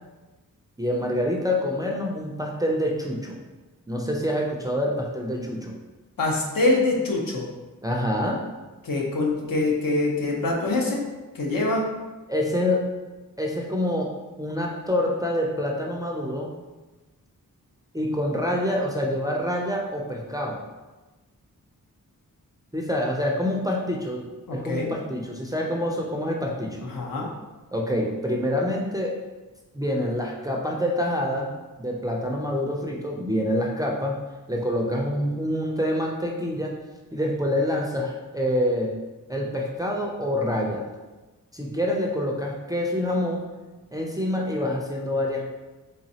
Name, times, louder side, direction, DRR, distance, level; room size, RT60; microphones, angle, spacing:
voice 1, 0.8-3.4 3.9-5.8 7.8-8.4 12.3-12.9 13.4-16.5 17.9-20.6 22.7-26.8 27.7-29.2 29.7-31.5 31.8-34.2 34.5-36.7 37.1-39.0 39.3-40.9 41.5-43.5 43.9-45.4, left 1 dB, 10° right, -1 dB, 0.4 m, -26 dB
voice 2, 6.2-7.5 8.8-11.0 11.3-11.9 24.5-24.9 26.8-27.3, left 2 dB, 75° left, -1 dB, 0.8 m, -24 dB
4.0 x 3.1 x 2.7 m, 1.2 s
wide cardioid pair, 125°, 34 cm